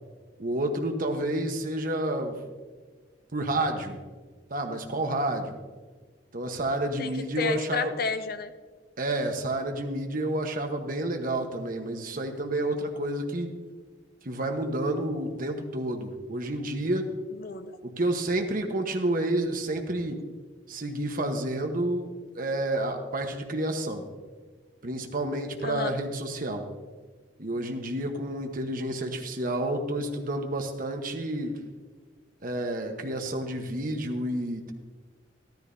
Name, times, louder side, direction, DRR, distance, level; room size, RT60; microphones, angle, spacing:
voice 1, 0.4-2.4 3.3-4.0 4.5-5.6 6.3-7.9 9.0-13.5 14.2-17.1 17.8-20.2 20.7-24.1 24.8-26.7 27.4-31.6 32.4-34.7, right 1 dB, 50° right, 4 dB, 1.1 m, -30 dB
voice 2, 7.0-8.5 17.3-17.8 25.6-26.0, left 4 dB, 55° left, 10 dB, 0.6 m, -31 dB
13.5 x 13.0 x 2.7 m, 1.4 s
head